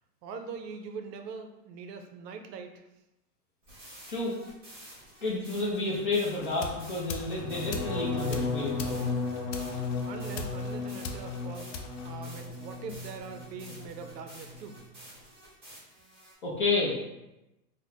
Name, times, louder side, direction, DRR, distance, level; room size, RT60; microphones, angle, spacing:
voice 1, 0.2-2.8 10.1-11.7 12.0-14.8, right 5 dB, 75° right, 6 dB, 0.6 m, -42 dB
sound 1, 3.6-16.3, right 1 dB, 15° right, 0.5 m, -51 dB
voice 2, 5.2-9.0 16.4-16.9, left 3 dB, 35° left, -4 dB, 0.4 m, -30 dB
sound 2, 6.3-12.8, left 4 dB, 85° left, 0.6 m, -42 dB
sound 3, 7.4-13.3 13.6-14.1 14.4-14.8, left 3 dB, 50° left, 0.9 m, -35 dB
2.5 x 2.1 x 3.9 m, 0.95 s
supercardioid pair, 170°, 49 cm